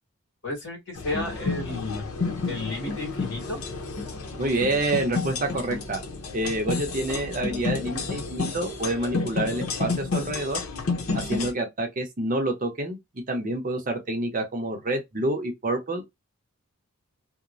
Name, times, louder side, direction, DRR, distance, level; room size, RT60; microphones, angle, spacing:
voice 1, 0.4-2.0 2.5-3.6, left 2 dB, 55° left, 1.7 m, -32 dB
sound 1, 1.0-11.5, left 3 dB, 85° left, 0.7 m, -31 dB
voice 2, 4.4-6.0 6.3-10.6 11.1-13.0 13.3-16.1, right 2 dB, 40° right, 0.7 m, -28 dB
3.0 x 2.1 x 2.5 m
head